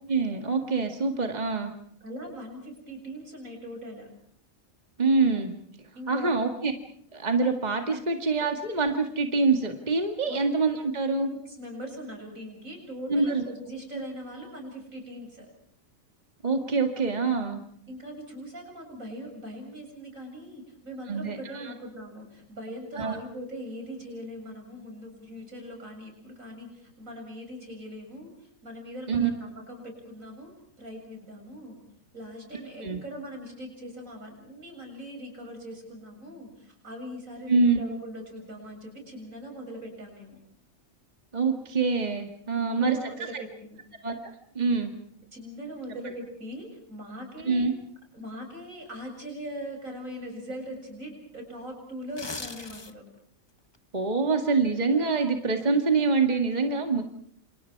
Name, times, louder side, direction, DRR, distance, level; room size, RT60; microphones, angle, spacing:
voice 1, 0.1-1.7 5.0-5.5 6.1-6.7 7.1-11.3 13.1-13.4 13.9-14.0 16.4-17.6 21.1-21.7 23.0-23.2 29.1-29.3 32.8-33.0 37.5-37.8 41.3-43.4 44.0-44.1 44.6-44.9 47.5-47.7 53.9-57.0, right 4 dB, 30° right, 4 dB, 2.1 m, -25 dB
voice 2, 2.0-4.1 6.0-6.4 7.9-8.0 10.2-10.4 11.3-15.5 17.9-28.3 28.6-30.5 30.8-31.8 32.1-40.4 42.5-43.8 45.3-47.7 48.1-53.0, equal, 75° right, 2 dB, 7.9 m, -41 dB
sound 1, 52.0-53.2 53.6-53.8, left 3 dB, 20° left, 1.0 m, -39 dB
29.0 x 28.0 x 4.7 m, 0.65 s
omnidirectional pair, 1.4 m